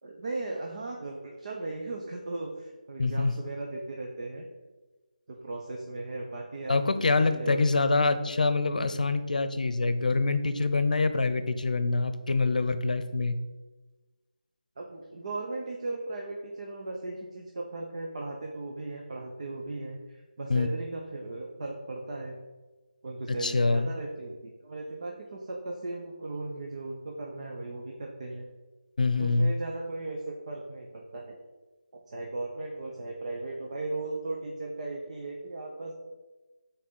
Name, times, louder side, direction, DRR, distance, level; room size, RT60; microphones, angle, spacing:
voice 1, 0.0-4.5 5.3-7.7 14.8-22.4 23.0-28.5 29.2-31.4 31.9-35.9, right 2 dB, 50° right, 0 dB, 0.8 m, -37 dB
voice 2, 3.0-3.3 6.7-13.4 20.5-20.7 23.4-23.9 29.0-29.5, left 3 dB, 65° left, 10 dB, 0.7 m, -25 dB
6.1 x 4.1 x 5.6 m, 1.2 s
figure-of-eight pair, 165°, 5 cm